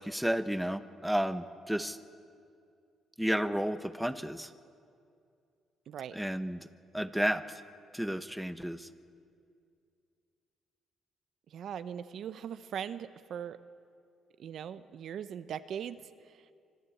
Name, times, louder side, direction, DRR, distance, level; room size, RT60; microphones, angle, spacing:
voice 1, 0.0-2.0 3.2-4.5 6.1-6.7 6.9-7.6 7.9-8.9, equal, 5° right, 11 dB, 0.9 m, -32 dB
voice 2, 5.9-6.2 11.5-13.6 14.4-16.5, right 8 dB, 70° right, 12 dB, 0.7 m, -40 dB
25.5 x 13.0 x 8.4 m, 2.4 s
cardioid pair, 90°, 0 cm